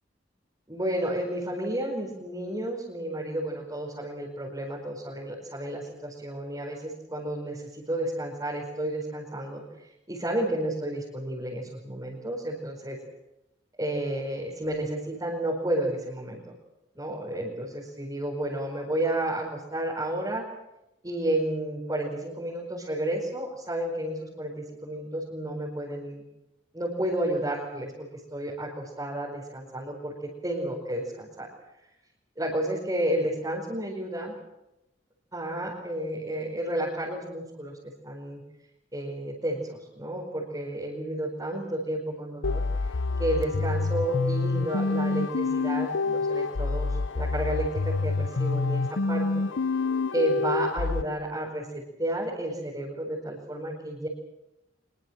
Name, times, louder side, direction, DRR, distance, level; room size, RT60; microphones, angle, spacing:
voice 1, 0.7-13.0 13.8-16.4 16.9-20.4 21.0-26.2 26.7-30.1 30.4-31.5 32.4-34.3 35.3-37.8 38.0-38.4 38.9-42.6 43.2-49.4 50.1-54.1, right 1 dB, 20° right, -3 dB, 4.9 m, -31 dB
sound 1, 42.4-51.0, left 3 dB, 90° left, 0.8 m, -27 dB
24.5 x 22.0 x 7.4 m, 0.92 s
head